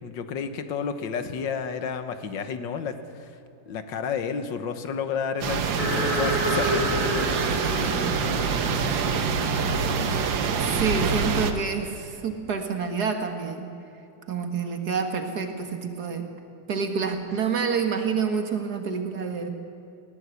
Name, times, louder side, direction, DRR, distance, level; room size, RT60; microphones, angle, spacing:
voice 1, 0.0-3.4 3.7-7.1, left 6 dB, 80° left, 9 dB, 1.8 m, -31 dB
sound 1, 5.4-11.5, right 5 dB, 85° right, 1.8 m, -25 dB
sound 2, 5.8-11.6, equal, 55° left, 4.4 m, -30 dB
voice 2, 10.6-13.7 14.3-16.3 16.7-19.5, right 5 dB, 60° right, 5 dB, 2.1 m, -28 dB
20.0 x 16.5 x 8.3 m, 2.7 s
omnidirectional pair, 2.0 m